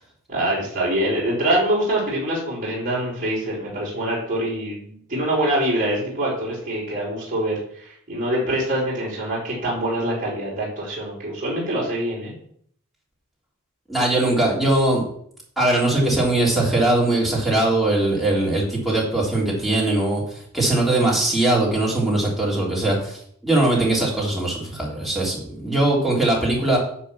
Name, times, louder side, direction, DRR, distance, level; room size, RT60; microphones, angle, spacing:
voice 1, 0.3-12.3, right 1 dB, 40° right, -6 dB, 4.3 m, -24 dB
voice 2, 13.9-15.0 15.6-26.8, right 2 dB, ahead, -5 dB, 3.3 m, -21 dB
10.0 x 4.6 x 7.2 m, 0.64 s
head